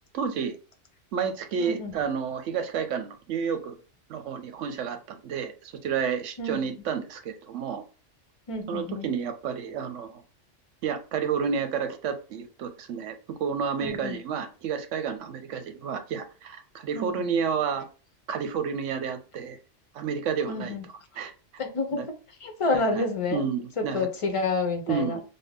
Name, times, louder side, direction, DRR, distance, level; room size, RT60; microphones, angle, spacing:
voice 1, 0.1-0.6 1.1-3.8 4.1-7.8 8.7-10.2 10.8-13.1 13.4-17.9 18.3-19.6 19.9-20.8 21.2-21.3 21.9-22.1 22.7-23.0 23.3-24.1 24.9-25.2, right 6 dB, 80° right, 0.9 m, -30 dB
voice 2, 1.6-1.9 6.4-6.7 8.5-9.1 13.8-14.2 16.9-17.3 20.5-20.9 21.6-22.0 22.4-23.4 23.8-25.2, left 3 dB, 40° left, 0.5 m, -29 dB
3.4 x 2.2 x 3.4 m
omnidirectional pair, 1.3 m